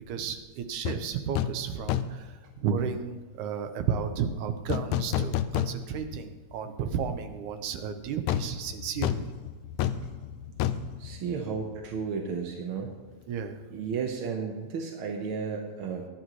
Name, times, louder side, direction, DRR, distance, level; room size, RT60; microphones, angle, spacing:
voice 1, 0.1-2.3 2.6-9.3 13.3-13.6, right 7 dB, 80° right, 7 dB, 2.3 m, -33 dB
sound 1, 0.8-1.0 1.3-1.6 1.9-2.3 4.7-6.1 6.5-6.6 8.3-11.9 12.2-12.3, left 10 dB, 80° left, 1.8 m, -30 dB
voice 2, 11.0-12.9 13.7-16.1, right 5 dB, 65° right, 2 dB, 1.4 m, -33 dB
19.0 x 10.5 x 3.1 m, 1.4 s
omnidirectional pair, 3.5 m